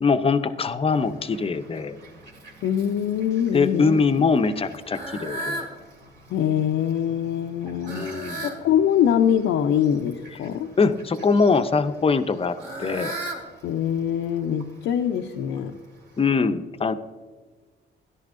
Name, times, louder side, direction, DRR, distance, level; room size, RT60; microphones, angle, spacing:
voice 1, 0.0-2.0 3.5-5.7 7.9-8.5 10.8-13.1 16.2-16.9, left 4 dB, 30° left, 10 dB, 0.6 m, -22 dB
Fowl, 0.9-16.3, right 1 dB, 65° right, 2.4 m, -40 dB
voice 2, 2.6-4.6 6.3-10.7 13.6-15.8, left 9 dB, 80° left, 4 dB, 0.5 m, -24 dB
13.0 x 11.0 x 2.6 m, 1.5 s
cardioid pair, 90°, 20 cm